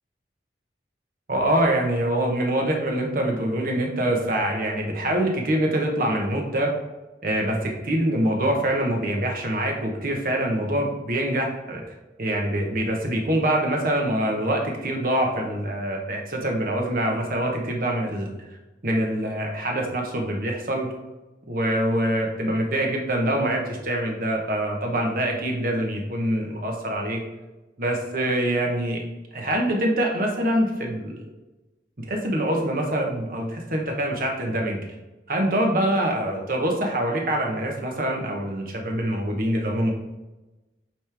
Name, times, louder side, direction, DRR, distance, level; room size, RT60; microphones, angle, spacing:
voice 1, 1.3-6.7 7.2-18.3 18.8-20.9 21.5-27.2 27.8-29.0 29.3-31.2 32.0-34.8 35.3-39.9, right 1 dB, 50° right, 1 dB, 1.0 m, -25 dB
8.8 x 3.2 x 3.4 m, 1.1 s
head